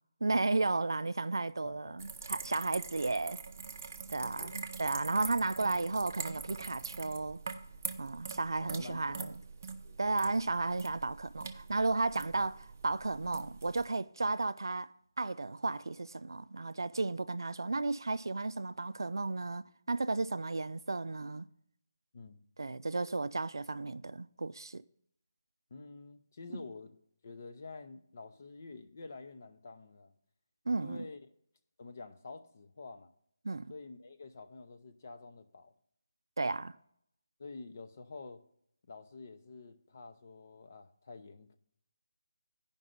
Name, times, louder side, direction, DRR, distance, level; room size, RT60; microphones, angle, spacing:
voice 1, 0.2-3.4 4.1-7.4 8.0-9.3 10.0-14.9 15.2-21.5 22.6-24.8 30.7-31.1 33.4-33.7 36.4-36.8, right 3 dB, 85° right, 0.4 m, -33 dB
voice 2, 1.6-1.9 4.1-4.6 8.6-9.3 9.8-10.0 22.1-22.4 25.7-27.0 27.2-30.1 30.8-31.2 31.8-33.1 33.7-35.7 37.4-38.4 38.9-41.6, left 3 dB, 40° left, 0.7 m, -49 dB
sound 1, 2.0-13.9, right 5 dB, 35° right, 0.6 m, -44 dB
12.5 x 5.4 x 3.9 m
figure-of-eight pair, 170°, 2 cm